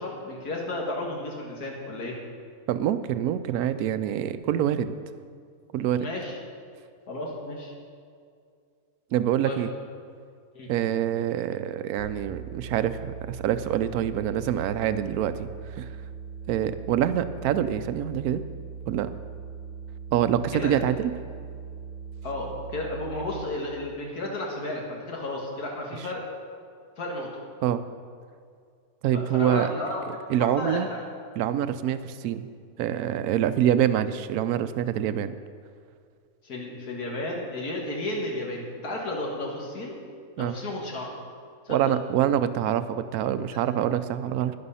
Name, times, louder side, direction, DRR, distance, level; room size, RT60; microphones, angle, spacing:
voice 1, 0.0-2.2 6.0-6.4 7.1-7.7 9.4-9.6 10.5-10.7 20.5-20.8 22.2-26.2 27.0-27.3 29.1-31.0 36.4-40.0 40.4-41.2 41.6-41.9, left 1 dB, 90° left, -1 dB, 2.2 m, -33 dB
voice 2, 2.7-4.9 5.7-6.1 9.1-9.7 10.7-15.9 16.5-18.4 18.9-19.1 20.1-21.1 27.6-27.8 29.0-29.7 30.3-30.9 31.4-32.5 32.8-35.3 40.4-40.6 41.7-44.5, right 10 dB, 80° right, 12 dB, 1.1 m, -25 dB
sound 1, 12.0-23.4, right 6 dB, 25° left, 1.4 m, -40 dB
12.0 x 10.5 x 5.6 m, 2.3 s
omnidirectional pair, 1.6 m